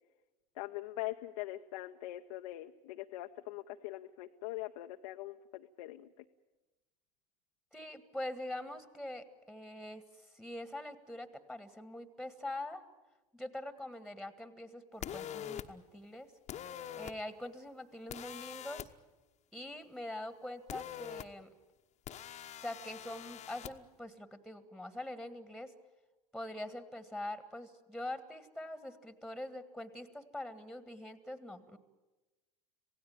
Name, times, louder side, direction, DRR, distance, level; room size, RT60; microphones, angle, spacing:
voice 1, 0.6-6.2, left 16 dB, 65° left, 4 dB, 0.9 m, -42 dB
voice 2, 7.7-12.8 13.3-16.3 17.0-18.9 19.5-21.5 22.6-25.7 26.3-31.8, left 1 dB, ahead, 12 dB, 1.8 m, -44 dB
sound 1, 15.0-15.6 16.5-17.1 18.1-18.9 20.7-21.2 22.1-23.7, left 10 dB, 35° left, 1.1 m, -44 dB
27.0 x 17.0 x 8.9 m, 1.1 s
figure-of-eight pair, 80°, 19 cm